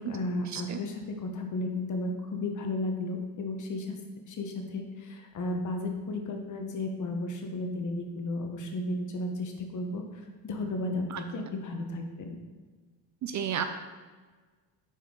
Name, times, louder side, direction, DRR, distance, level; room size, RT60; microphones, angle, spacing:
voice 1, 0.0-4.0 4.3-12.4, left 2 dB, 45° left, 3 dB, 1.1 m, -34 dB
voice 2, 13.2-13.6, right 8 dB, 45° right, 8 dB, 0.5 m, -32 dB
5.9 x 4.5 x 3.9 m, 1.4 s
cardioid pair, 95°, 44 cm